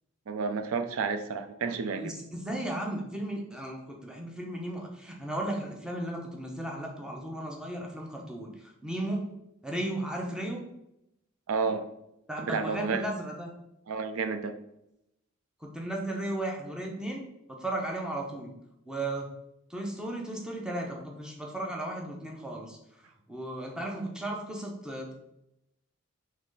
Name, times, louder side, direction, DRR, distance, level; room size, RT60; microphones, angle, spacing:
voice 1, 0.3-2.1 11.5-11.9 12.4-13.1 13.9-14.5, right 5 dB, 80° right, 8 dB, 0.4 m, -31 dB
voice 2, 2.0-8.5 8.8-9.3 9.6-10.6 12.3-13.5 15.6-17.2 17.5-18.5 18.9-19.3 19.7-22.8 23.3-25.1, right 1 dB, 5° right, 0 dB, 0.6 m, -35 dB
3.9 x 3.1 x 3.8 m, 0.84 s
head